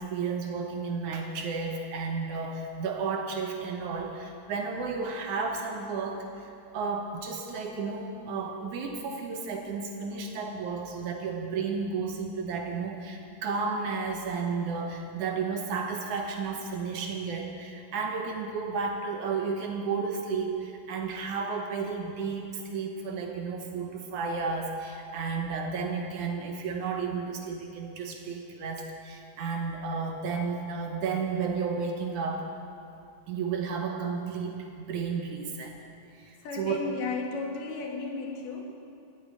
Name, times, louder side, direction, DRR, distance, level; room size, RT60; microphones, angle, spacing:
voice 1, 0.0-32.5 33.3-35.8 36.1-36.8, right 5 dB, 70° right, 3 dB, 2.2 m, -32 dB
voice 2, 36.4-38.7, left 4 dB, 70° left, 1 dB, 3.1 m, -34 dB
13.5 x 8.6 x 8.8 m, 2.6 s
omnidirectional pair, 4.0 m